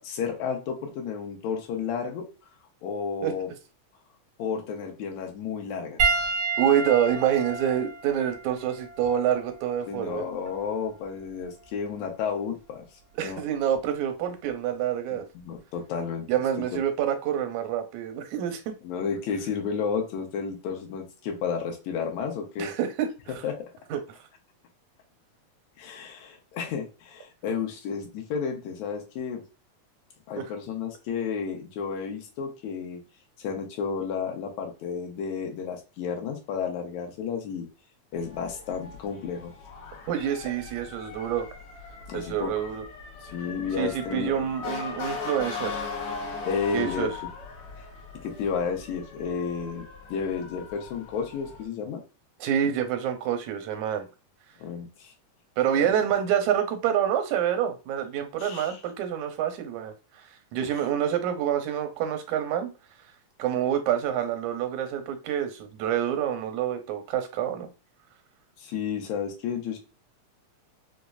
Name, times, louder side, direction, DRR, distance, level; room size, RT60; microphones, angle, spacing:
voice 1, 0.0-2.3 2.8-3.5 4.4-6.0 9.9-12.8 13.2-13.4 15.1-16.3 18.8-22.7 23.4-23.6 25.8-29.4 30.3-33.0 33.4-37.7 38.1-39.5 42.1-42.5 43.2-44.5 46.5-47.1 48.2-52.0 54.6-55.1 55.8-55.9 58.4-58.7 60.6-60.7 68.6-69.8, left 6 dB, 75° left, 2 dB, 2.1 m, -32 dB
Piano, 6.0-10.7 11.6-11.8 13.7-13.8, right 4 dB, 70° right, 1.2 m, -31 dB
voice 2, 6.6-10.3 13.2-15.3 16.3-18.7 22.6-23.3 23.9-24.0 30.4-30.5 40.1-41.5 42.1-42.8 43.8-45.8 46.7-47.1 52.4-54.1 55.6-59.9 60.5-62.7 63.4-67.7, right 9 dB, 85° right, 6 dB, 2.0 m, -27 dB
Motor vehicle (road) / Siren, 38.1-51.6, left 4 dB, 60° left, 1.7 m, -39 dB
5.1 x 2.1 x 2.3 m, 0.32 s
omnidirectional pair, 3.3 m